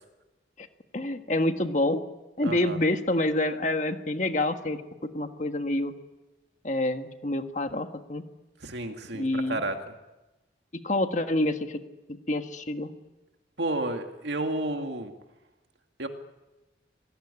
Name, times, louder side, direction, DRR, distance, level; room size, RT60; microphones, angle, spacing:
voice 1, 0.9-2.0 2.4-5.9 6.6-8.2 9.1-9.6 10.8-11.8 12.3-12.9, left 1 dB, 40° left, 7 dB, 1.6 m, -27 dB
voice 2, 2.4-2.8 8.6-9.9 13.6-15.1 16.0-16.1, right 2 dB, 70° right, 5 dB, 2.2 m, -31 dB
27.0 x 18.5 x 9.9 m, 1.1 s
head